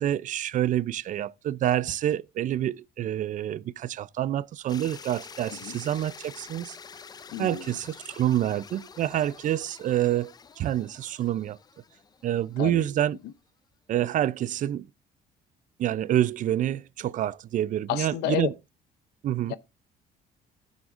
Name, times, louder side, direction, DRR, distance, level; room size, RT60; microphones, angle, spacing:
voice 1, 0.0-6.8 7.4-11.6 12.2-13.2 13.9-14.9 15.8-18.5 19.2-19.5, right 12 dB, 50° right, 0.4 m, -27 dB
sound 1, 4.7-12.7, left 6 dB, 25° left, 0.4 m, -47 dB
voice 2, 7.3-7.8 12.6-12.8 13.2-13.3 17.9-18.5 19.5-19.6, left 14 dB, 85° left, 0.7 m, -31 dB
16.0 x 7.2 x 2.5 m
cardioid pair, 110°, 17 cm